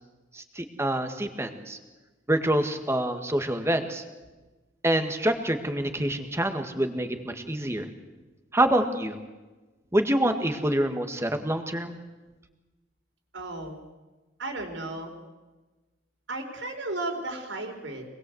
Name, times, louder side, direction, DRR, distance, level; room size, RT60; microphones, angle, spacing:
voice 1, 0.3-1.8 2.3-4.0 4.8-7.9 8.5-9.2 9.9-12.0, right 1 dB, 15° right, 7 dB, 1.9 m, -26 dB
voice 2, 13.3-13.8 14.4-15.1 16.3-18.1, right 2 dB, 90° right, 3 dB, 4.4 m, -34 dB
26.5 x 20.5 x 8.0 m, 1.2 s
head